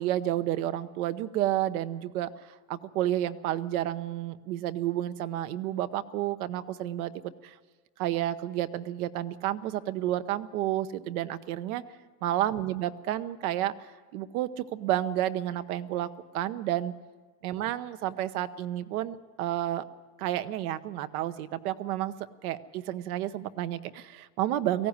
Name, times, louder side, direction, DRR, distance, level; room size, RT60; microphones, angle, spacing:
voice 1, 0.0-2.3 2.7-7.1 7.4-7.5 8.0-11.8 12.2-13.7 14.1-16.1 16.3-16.9 17.4-19.8 20.2-22.1 22.4-24.9, right 13 dB, 80° right, 11 dB, 1.1 m, -30 dB
18.0 x 15.0 x 9.6 m, 1.4 s
supercardioid pair, 130°, 43 cm